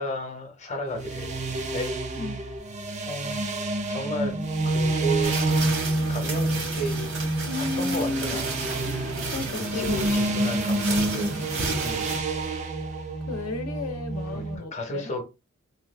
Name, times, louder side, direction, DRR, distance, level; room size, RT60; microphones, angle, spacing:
voice 1, 0.0-1.9 3.0-3.4 3.9-4.4 4.7-5.8 6.1-7.1 7.5-8.5 9.5-11.4 11.8-12.1 14.3-15.2, equal, 30° left, 0.8 m, -33 dB
sound 1, 0.9-14.6, right 2 dB, 30° right, 0.5 m, -28 dB
sound 2, 5.2-12.2, right 3 dB, 80° right, 1.5 m, -32 dB
voice 2, 7.5-8.4 8.8-10.0 13.3-15.1, left 2 dB, 75° left, 0.7 m, -33 dB
2.9 x 2.4 x 3.3 m
head